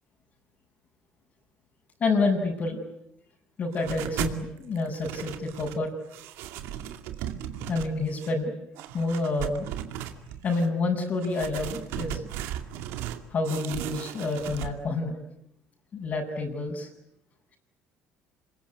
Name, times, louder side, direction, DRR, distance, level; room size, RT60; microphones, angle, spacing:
voice 1, 2.0-2.8 3.6-5.9 7.7-8.5 8.9-9.7 10.4-12.2 13.3-15.2 15.9-16.9, left 3 dB, 45° left, -4 dB, 6.4 m, -28 dB
sound 1, 3.7-4.4 4.8-5.8 6.1-8.3 8.8-10.7 11.2-13.2 13.4-14.7, right 11 dB, 85° right, 2.4 m, -36 dB
27.0 x 22.0 x 9.5 m, 0.80 s
cardioid pair, 110°, 4 cm